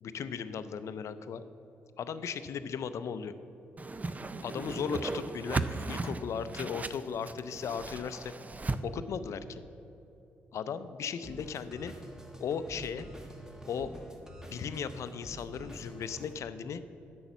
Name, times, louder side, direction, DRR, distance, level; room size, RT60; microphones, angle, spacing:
voice 1, 0.0-1.4 2.0-3.3 4.4-8.3 8.8-9.6 10.5-11.9 12.4-13.1 13.7-13.9 14.5-16.8, left 7 dB, 65° left, 12 dB, 0.5 m, -36 dB
Whoosh swoosh swish, 3.8-8.8, right 3 dB, 30° right, 0.5 m, -36 dB
sound 1, 11.2-16.3, right 1 dB, 10° right, 1.5 m, -47 dB
8.8 x 6.3 x 7.1 m, 2.9 s
supercardioid pair, 50°, 6 cm